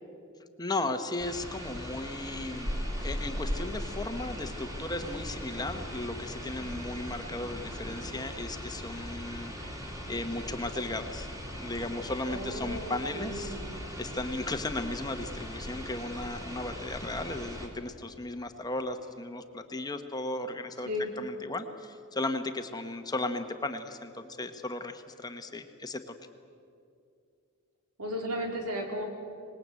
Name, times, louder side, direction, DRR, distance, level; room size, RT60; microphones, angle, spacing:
voice 1, 0.6-9.5 10.1-13.6 14.0-20.9 21.2-26.1, left 2 dB, 20° left, 7 dB, 1.2 m, -36 dB
sound 1, 1.2-17.7, equal, 15° right, 2.9 m, -40 dB
sound 2, 2.6-8.4, equal, 35° right, 2.4 m, -39 dB
voice 2, 12.3-13.6 20.8-21.1 28.0-29.1, equal, 85° right, 2 dB, 4.0 m, -35 dB
26.0 x 20.0 x 8.4 m, 2.5 s
head